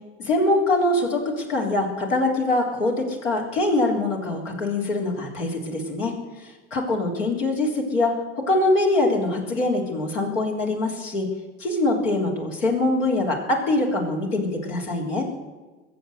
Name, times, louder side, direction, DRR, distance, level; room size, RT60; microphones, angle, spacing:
voice 1, 0.2-6.2 6.7-11.3 11.6-15.3, left 2 dB, 75° left, -1 dB, 3.7 m, -23 dB
22.5 x 7.5 x 8.1 m, 1.3 s
figure-of-eight pair, 70°, 38 cm